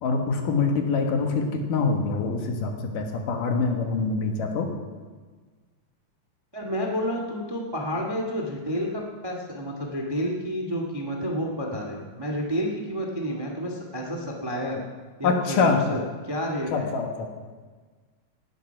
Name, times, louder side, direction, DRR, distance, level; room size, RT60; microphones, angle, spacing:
voice 1, 0.0-4.7 15.2-15.8 16.7-17.3, left 4 dB, 65° left, 3 dB, 2.9 m, -25 dB
voice 2, 6.5-14.8 15.2-16.9, equal, 40° right, 1 dB, 0.3 m, -30 dB
18.0 x 10.5 x 5.9 m, 1.4 s
omnidirectional pair, 4.4 m